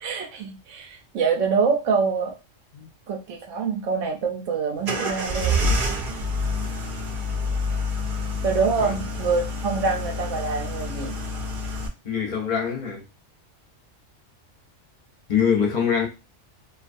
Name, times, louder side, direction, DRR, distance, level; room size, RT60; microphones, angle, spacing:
voice 1, 0.0-2.3 3.1-5.6 8.4-11.1, right 5 dB, 85° right, 1.0 m, -25 dB
sound 1, 4.8-11.9, left 1 dB, 55° right, 0.6 m, -27 dB
voice 2, 12.0-13.0 15.3-16.1, left 7 dB, 45° left, 0.6 m, -24 dB
2.4 x 2.3 x 2.5 m
omnidirectional pair, 1.3 m